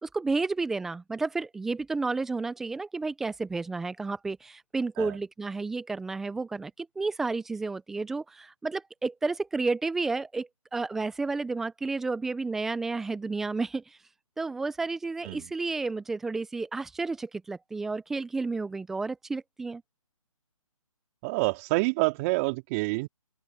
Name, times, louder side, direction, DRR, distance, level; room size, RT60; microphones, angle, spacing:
voice 1, 0.0-14.0 14.4-19.8, right 3 dB, ahead, 0.4 m, -31 dB
voice 2, 21.2-23.1, right 26 dB, 25° right, 2.6 m, -27 dB
open air
figure-of-eight pair, 150°, 18 cm